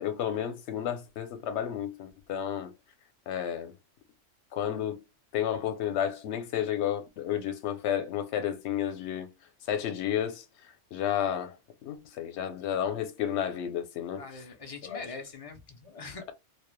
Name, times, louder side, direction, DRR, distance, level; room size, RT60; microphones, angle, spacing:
voice 1, 0.0-2.7 3.3-3.7 4.5-5.0 5.3-9.3 9.7-10.4 10.9-11.6 11.8-14.2 14.8-15.0, left 10 dB, 70° left, 0.9 m, -31 dB
voice 2, 14.2-16.3, left 4 dB, 50° left, 0.4 m, -42 dB
2.3 x 2.0 x 3.0 m
omnidirectional pair, 1.2 m